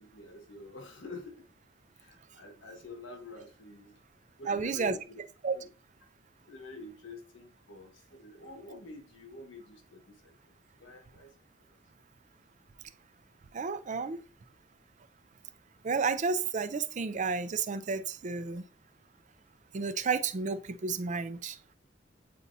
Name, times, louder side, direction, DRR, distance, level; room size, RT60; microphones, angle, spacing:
voice 1, 0.0-1.5 1.9-4.0 4.4-5.2 5.5-5.7 6.4-10.3 10.8-11.3 11.7-11.8, left 2 dB, 85° left, 1.4 m, -47 dB
voice 2, 4.5-4.9 5.4-5.6 13.5-14.2 15.8-18.7 19.7-21.6, right 5 dB, 40° right, 0.5 m, -31 dB
8.4 x 4.2 x 2.7 m
head